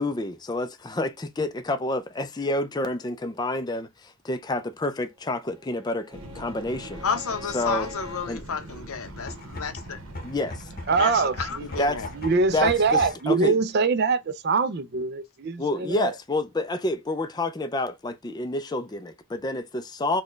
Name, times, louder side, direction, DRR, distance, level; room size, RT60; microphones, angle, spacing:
voice 1, 0.0-7.0 7.4-7.9 8.3-8.4 10.2-10.7 11.8-12.0 12.5-13.6 15.6-20.2, left 2 dB, 20° left, 0.4 m, -28 dB
Bowed string instrument, 5.2-8.4, left 1 dB, 20° right, 0.7 m, -46 dB
sound 1, 6.1-13.1, right 1 dB, 70° right, 1.2 m, -42 dB
voice 2, 7.0-10.0 11.0-12.1, left 6 dB, 75° left, 0.7 m, -31 dB
sound 2, 9.1-13.4, left 1 dB, 40° left, 0.8 m, -40 dB
voice 3, 10.9-11.8 12.2-16.1, right 4 dB, 45° right, 0.4 m, -24 dB
4.2 x 2.2 x 3.1 m
head